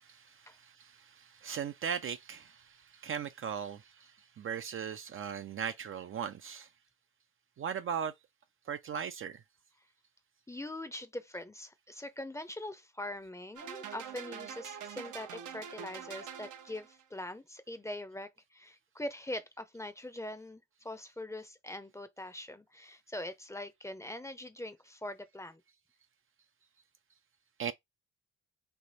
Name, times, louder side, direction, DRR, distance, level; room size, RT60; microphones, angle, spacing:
voice 1, 0.0-6.7 7.6-8.1 8.7-9.4 27.6-27.7, right 7 dB, 45° right, 0.5 m, -38 dB
voice 2, 10.5-25.6, left 1 dB, 10° left, 0.6 m, -43 dB
sound 1, 13.6-17.0, right 8 dB, 75° right, 0.9 m, -45 dB
3.4 x 2.9 x 4.1 m
cardioid pair, 90°, 30 cm